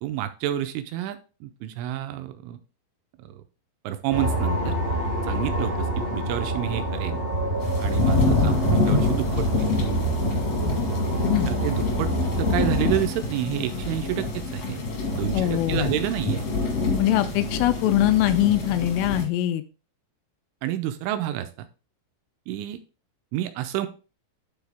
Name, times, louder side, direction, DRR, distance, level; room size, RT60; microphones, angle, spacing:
voice 1, 0.0-2.6 3.2-3.4 3.8-4.7 5.2-7.2 7.8-9.7 11.4-12.1 12.4-14.8 15.1-16.4 20.6-21.7 22.5-22.8 23.3-23.9, right 12 dB, 85° right, 9 dB, 2.8 m, -29 dB
sound 1, 4.1-13.0, right 1 dB, 40° right, 0.8 m, -27 dB
sound 2, 7.6-19.2, left 2 dB, 65° left, 1.5 m, -26 dB
voice 2, 15.3-15.9 17.0-19.6, left 13 dB, 85° left, 10 dB, 2.9 m, -22 dB
11.5 x 4.1 x 3.5 m, 0.34 s
omnidirectional pair, 5.9 m